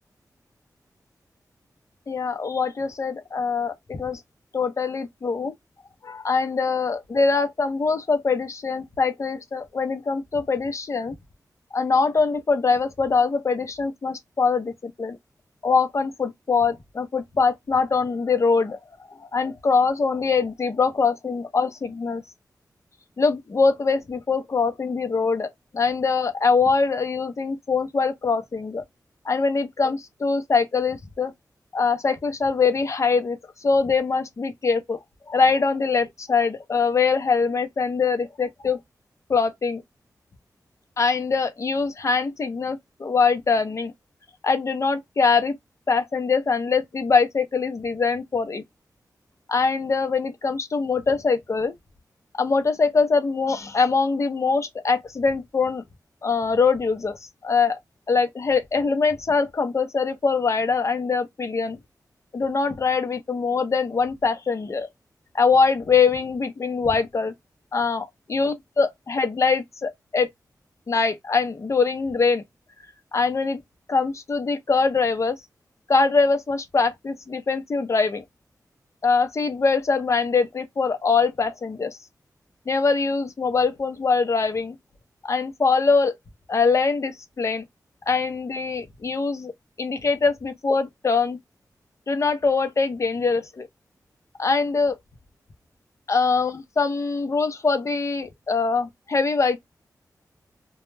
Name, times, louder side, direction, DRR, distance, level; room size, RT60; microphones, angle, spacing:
voice 1, 2.1-4.2 4.5-5.5 6.0-11.1 11.7-15.2 15.6-18.8 19.1-22.2 23.2-28.8 29.2-31.3 31.7-35.0 35.3-38.8 39.3-39.8 41.0-43.9 44.4-45.6 45.9-48.6 49.5-51.8 52.4-55.8 56.2-57.2 57.4-57.8 58.1-61.8 62.3-64.9 65.3-67.3 67.7-70.3 70.9-72.4 73.1-73.6 73.9-75.4 75.9-78.2 79.0-82.0 82.7-84.8 85.2-86.1 86.5-87.6 88.1-89.5 89.8-91.4 92.1-93.7 94.4-95.0 96.1-99.6, left 4 dB, 45° left, 0.6 m, -23 dB
2.2 x 2.1 x 3.1 m
wide cardioid pair, 75°, 7 cm